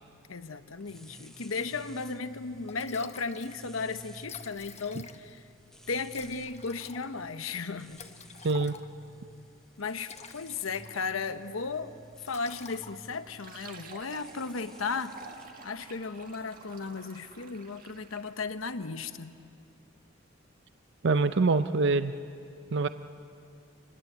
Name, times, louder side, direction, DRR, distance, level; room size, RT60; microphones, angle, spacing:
voice 1, 0.3-5.4 5.9-8.1 9.8-12.0 12.2-15.2 15.6-19.4, left 4 dB, 85° left, 10 dB, 1.0 m, -35 dB
sound 1, 0.8-15.5, left 1 dB, 5° left, 1.0 m, -54 dB
Liquid, 2.3-2.4 2.7-3.6 3.9-4.0 4.2-5.4 6.1-9.1 9.8-11.3 11.6-11.9 12.2-13.3, left 6 dB, 35° left, 0.9 m, -49 dB
voice 2, 8.4-8.8 21.0-22.1 22.7-22.9, right 3 dB, 60° right, 11 dB, 0.6 m, -24 dB
Fill (with liquid), 13.3-18.4, right 4 dB, 45° right, 1.7 m, -50 dB
27.5 x 21.0 x 8.1 m, 2.4 s
head